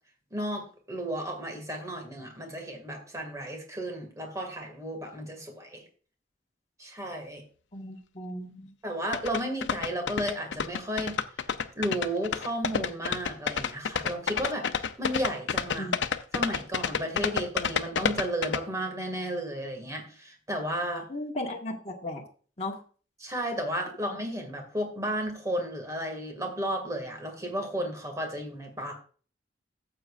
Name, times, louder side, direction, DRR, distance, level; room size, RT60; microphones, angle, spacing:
voice 1, 0.3-5.8 6.8-7.4 8.8-11.2 11.8-15.9 16.3-21.1 23.2-28.9, right 1 dB, 20° right, 3 dB, 2.2 m, -33 dB
voice 2, 7.7-8.7 15.8-16.0 21.1-22.2 22.6-22.8, left 1 dB, 35° left, -1 dB, 1.6 m, -36 dB
sound 1, 9.1-18.6, left 6 dB, 85° left, 0.6 m, -29 dB
14.0 x 7.7 x 2.5 m, 0.39 s
head